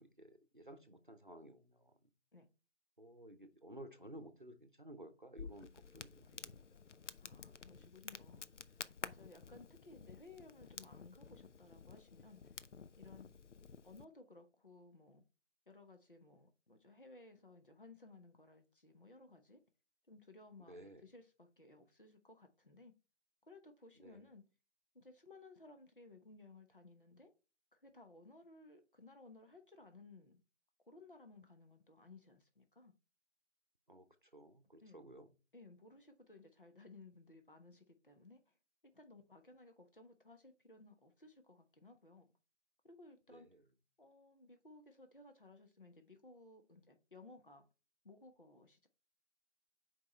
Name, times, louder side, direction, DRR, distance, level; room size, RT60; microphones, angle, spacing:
voice 1, 0.0-1.9 3.0-6.6 20.7-21.0 24.0-24.3 33.9-35.3 43.3-43.6, right 1 dB, 45° right, 0.9 m, -55 dB
Crackle, 5.4-14.0, left 5 dB, 80° left, 0.6 m, -52 dB
voice 2, 7.2-8.7 9.0-12.5 13.0-13.3 13.8-15.2 15.7-19.6 20.1-22.9 23.4-24.5 24.9-27.3 27.7-30.4 30.9-32.9 34.8-35.1 35.5-38.6 38.8-42.3 42.8-43.5 44.0-47.6 48.0-48.9, left 3 dB, 50° left, 1.1 m, -59 dB
6.3 x 4.7 x 4.3 m
figure-of-eight pair, 180°, 35 cm